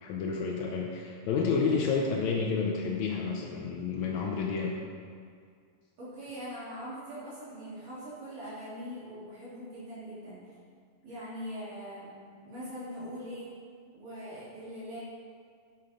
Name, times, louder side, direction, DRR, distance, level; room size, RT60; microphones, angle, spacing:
voice 1, 0.0-4.8, left 5 dB, 85° left, 0 dB, 1.6 m, -30 dB
voice 2, 6.0-10.4 11.0-13.5 13.9-15.0, equal, 60° right, -11 dB, 4.9 m, -42 dB
12.0 x 9.9 x 3.8 m, 2.1 s
omnidirectional pair, 4.3 m